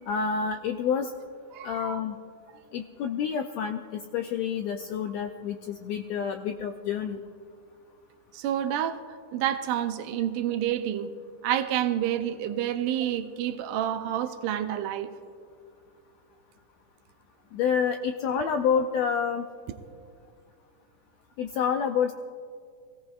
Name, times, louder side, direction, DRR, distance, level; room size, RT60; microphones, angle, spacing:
voice 1, 0.1-1.1 1.6-2.2 2.7-7.2 17.5-19.5 21.4-22.1, left 7 dB, 85° left, 6 dB, 1.5 m, -28 dB
voice 2, 1.5-2.0 8.3-9.0 9.3-11.1 11.4-15.1, right 11 dB, 85° right, 8 dB, 2.2 m, -28 dB
23.5 x 16.5 x 2.4 m, 2.2 s
omnidirectional pair, 3.6 m